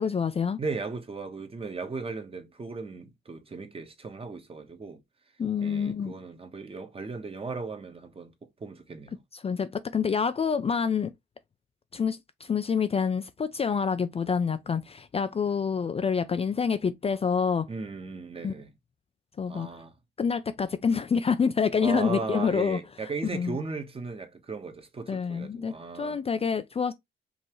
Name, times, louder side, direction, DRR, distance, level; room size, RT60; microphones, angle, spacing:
voice 1, 0.0-0.6 5.4-6.1 9.3-11.1 11.9-17.7 18.4-18.5 19.4-19.7 20.2-22.8 23.3-23.6 25.1-26.9, left 6 dB, 30° left, 0.5 m, -27 dB
voice 2, 0.6-5.0 5.6-8.3 8.6-9.2 17.7-18.7 19.5-19.9 21.8-26.2, right 4 dB, 30° right, 1.2 m, -36 dB
5.4 x 2.8 x 3.1 m
cardioid pair, 90°, 20 cm